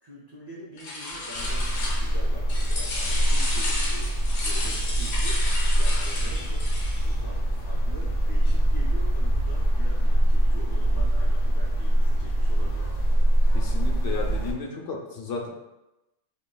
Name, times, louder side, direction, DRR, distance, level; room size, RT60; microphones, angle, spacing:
voice 1, 0.0-6.7 7.0-12.9, equal, 40° right, -5 dB, 0.3 m, -44 dB
sound 1, 0.8-2.2 2.5-7.1, left 2 dB, 90° left, 1.2 m, -33 dB
sound 2, 1.1-1.6 3.0-3.7 4.6-5.2 6.4-7.0 8.5-9.0 10.0-10.6, equal, 75° right, 1.1 m, -49 dB
sound 3, 1.4-14.5, right 1 dB, 40° left, 0.6 m, -23 dB
voice 2, 13.5-15.5, left 4 dB, 70° left, 0 dB, 0.9 m, -33 dB
5.1 x 2.6 x 2.2 m, 0.97 s
omnidirectional pair, 1.4 m